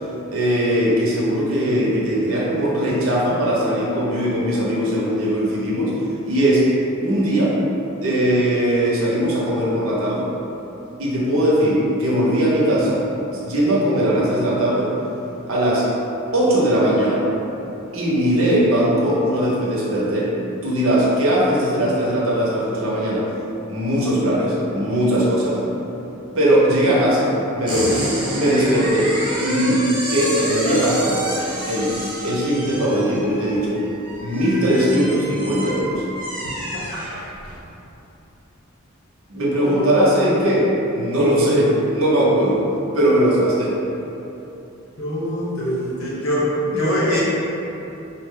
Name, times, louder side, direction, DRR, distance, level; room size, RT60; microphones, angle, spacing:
voice 1, 0.3-6.0 6.2-6.6 7.0-7.5 8.0-10.3 11.0-13.0 13.4-14.9 15.5-15.8 16.3-17.2 17.9-20.3 20.6-23.3 23.7-25.6 26.3-28.1 28.3-29.1 29.4-29.8 30.1-31.2 31.7-31.9 32.2-33.8 34.2-36.0 39.3-42.7 42.9-43.7 46.7-46.8 47.1-47.2, equal, 75° right, -5 dB, 0.8 m, -19 dB
sound 1, 27.6-37.6, right 1 dB, 25° right, 0.9 m, -29 dB
voice 2, 39.5-39.9 45.0-47.2, equal, 80° left, -7 dB, 1.1 m, -23 dB
4.2 x 2.0 x 3.7 m, 3.0 s
head